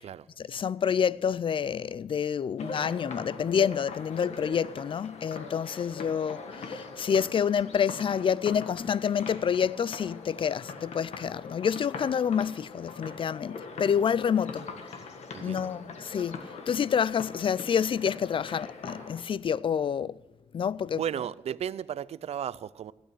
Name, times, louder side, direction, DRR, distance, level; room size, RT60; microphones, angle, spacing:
voice 1, 0.4-14.7 15.4-20.2 20.5-21.0, left 7 dB, 50° left, 0.4 m, -28 dB
sound 1, 2.6-19.2, left 4 dB, 75° left, 1.6 m, -42 dB
sound 2, 2.6-5.8, right 5 dB, 35° right, 1.4 m, -52 dB
voice 2, 15.3-15.7 20.9-22.9, right 9 dB, 65° right, 0.4 m, -34 dB
15.5 x 8.8 x 6.1 m
cardioid pair, 80°, 11 cm